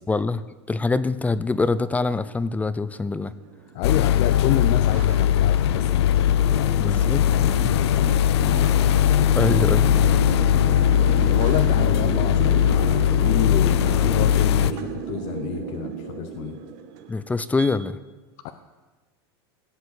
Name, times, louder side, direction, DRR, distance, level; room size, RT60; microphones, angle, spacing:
voice 1, 0.1-0.4 0.7-3.3 6.8-7.7 9.3-10.1 17.1-18.0, left 3 dB, 10° left, 15 dB, 0.5 m, -24 dB
sound 1, 1.4-17.7, right 5 dB, 55° right, 1.7 m, -33 dB
voice 2, 3.7-9.1 11.3-16.6 18.4-18.5, left 12 dB, 55° left, 8 dB, 0.9 m, -30 dB
sound 2, 3.8-14.7, left 10 dB, 80° left, 0.6 m, -19 dB
16.5 x 8.1 x 8.1 m, 1.3 s
supercardioid pair, 120°, 14 cm